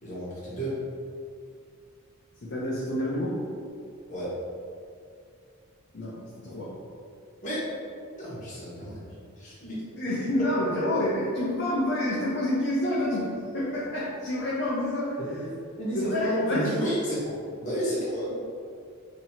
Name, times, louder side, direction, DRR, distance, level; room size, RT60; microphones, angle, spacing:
voice 1, 0.0-0.7 4.1-4.3 7.4-7.7 8.2-9.0 9.4-9.8 15.2-15.5 15.8-18.5, equal, 35° left, -8 dB, 1.2 m, -31 dB
voice 2, 2.4-3.4 5.9-6.7 10.0-15.4 15.9-16.7, left 1 dB, 55° left, -8 dB, 0.7 m, -28 dB
3.0 x 2.9 x 4.2 m, 2.3 s
head